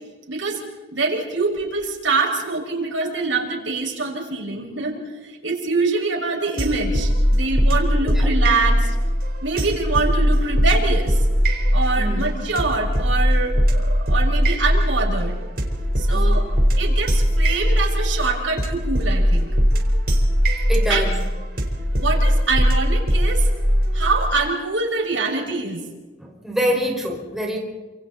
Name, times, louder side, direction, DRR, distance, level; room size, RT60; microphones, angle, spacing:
voice 1, 0.3-0.6 0.9-8.9 9.4-11.2 11.7-15.4 16.0-16.5 16.8-19.5 20.9-21.0 22.0-23.5 23.9-25.8, right 3 dB, 80° right, 1 dB, 6.0 m, -24 dB
sound 1, 6.6-24.3, equal, 50° right, 4.4 m, -20 dB
voice 2, 16.1-16.4 20.7-21.1 26.2-27.6, equal, ahead, -2 dB, 5.1 m, -25 dB
30.0 x 27.5 x 4.2 m, 1.3 s
head